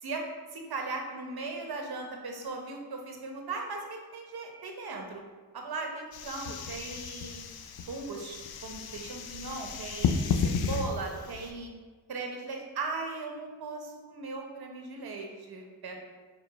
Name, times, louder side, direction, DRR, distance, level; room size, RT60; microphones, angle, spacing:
voice 1, 0.5-5.2 5.5-7.4 7.9-11.7 12.1-16.0, right 3 dB, 50° right, 2 dB, 0.9 m, -38 dB
sound 1, 6.1-11.5, left 6 dB, 55° left, 0.5 m, -33 dB
4.5 x 2.0 x 4.0 m, 1.4 s
supercardioid pair, 45°, 46 cm